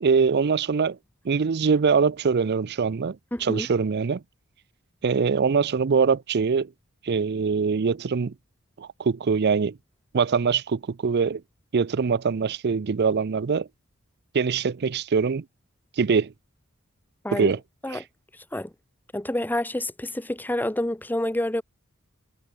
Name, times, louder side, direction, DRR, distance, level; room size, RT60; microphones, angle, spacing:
voice 1, 0.0-1.0 1.2-4.2 5.0-6.7 7.0-8.3 8.8-9.8 10.1-11.4 11.7-13.7 14.3-15.4 16.0-16.3 17.3-17.6 17.9-18.0, right 5 dB, 50° right, 0.5 m, -23 dB
voice 2, 3.3-3.7 17.2-17.5 17.8-18.0 18.5-18.7 19.1-21.6, left 1 dB, 10° left, 1.1 m, -28 dB
head